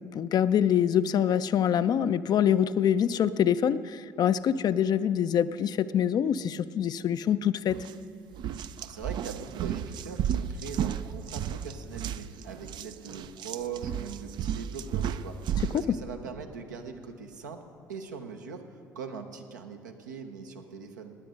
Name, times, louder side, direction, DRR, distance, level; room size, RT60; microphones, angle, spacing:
voice 1, 0.0-7.8 15.7-15.8, left 9 dB, 45° left, 13 dB, 0.4 m, -25 dB
sound 1, 7.7-7.9 8.3-15.9, right 9 dB, 50° right, 0.5 m, -33 dB
voice 2, 8.8-17.6 17.9-21.1, right 6 dB, 85° right, 4 dB, 0.9 m, -41 dB
17.5 x 9.3 x 5.1 m, 2.3 s
hypercardioid pair, 55°, 9 cm